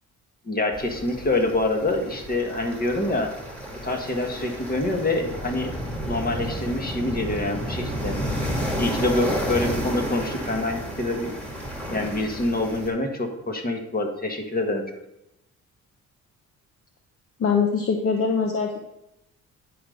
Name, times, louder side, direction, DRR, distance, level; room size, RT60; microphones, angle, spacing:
voice 1, 0.4-3.3 3.8-5.7 6.1-8.1 8.8-11.3 11.9-14.8, left 2 dB, 30° left, 3 dB, 1.6 m, -26 dB
sound 1, 0.7-12.9, equal, 5° left, 2.3 m, -31 dB
voice 2, 17.4-18.8, left 5 dB, 50° left, 3 dB, 0.9 m, -23 dB
10.0 x 5.2 x 3.9 m, 0.87 s
cardioid pair, 90°, 30 cm